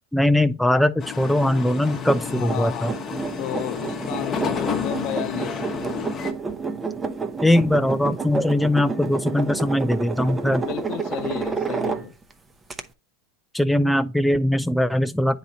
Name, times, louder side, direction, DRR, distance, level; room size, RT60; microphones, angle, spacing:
voice 1, 0.1-2.9 7.4-10.6 13.5-15.4, left 1 dB, ahead, 0.4 m, -21 dB
sound 1, 1.0-6.3, left 6 dB, 30° left, 1.0 m, -31 dB
sound 2, 1.8-12.3 12.7-12.8, right 4 dB, 20° right, 0.7 m, -30 dB
voice 2, 2.3-5.6 10.6-12.1, left 13 dB, 55° left, 0.5 m, -33 dB
9.4 x 4.1 x 2.8 m
hypercardioid pair, 100°, 0 cm